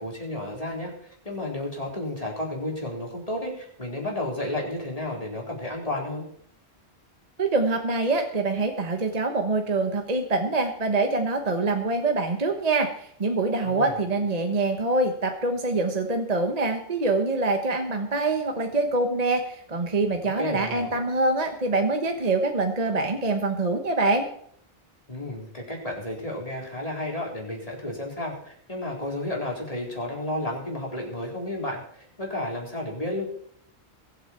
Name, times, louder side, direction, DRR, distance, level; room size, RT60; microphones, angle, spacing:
voice 1, 0.0-6.2 13.6-14.0 20.4-20.9 25.1-31.8 32.2-33.2, left 1 dB, 35° left, -1 dB, 4.0 m, -32 dB
voice 2, 7.4-24.3, right 3 dB, 35° right, 5 dB, 1.3 m, -25 dB
22.5 x 8.3 x 4.4 m, 0.65 s
omnidirectional pair, 1.1 m